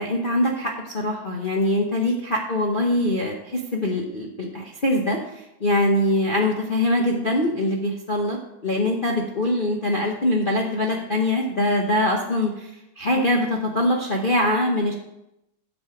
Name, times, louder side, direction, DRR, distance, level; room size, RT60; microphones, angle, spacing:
voice 1, 0.0-14.9, left 1 dB, 55° left, -1 dB, 0.5 m, -23 dB
8.0 x 6.3 x 5.9 m, 0.87 s
omnidirectional pair, 2.3 m